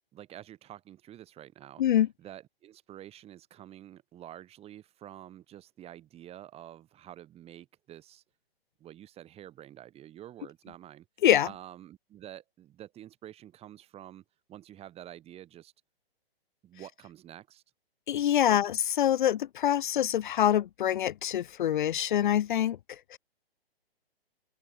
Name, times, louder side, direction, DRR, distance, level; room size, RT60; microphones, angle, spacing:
voice 1, 0.1-1.8 2.2-8.2 8.8-11.1 11.4-15.7 16.6-17.6 18.5-18.6, right 12 dB, 20° right, 5.0 m, -48 dB
voice 2, 18.1-22.8 23.1-23.2, left 11 dB, 50° left, 1.6 m, -25 dB
open air
hypercardioid pair, 130°, 30 cm